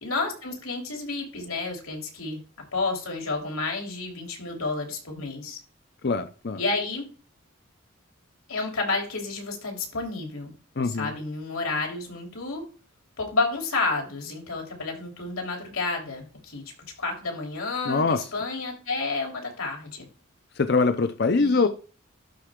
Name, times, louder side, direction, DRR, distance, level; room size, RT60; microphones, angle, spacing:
voice 1, 0.0-2.4 2.7-5.6 6.5-7.1 8.5-10.5 10.8-12.6 13.2-16.6 17.0-20.1 21.4-21.7, left 3 dB, 85° left, 3.2 m, -30 dB
voice 2, 6.0-6.6 10.8-11.1 17.9-18.2 20.6-21.7, left 4 dB, 50° left, 0.5 m, -23 dB
11.5 x 4.2 x 3.6 m
head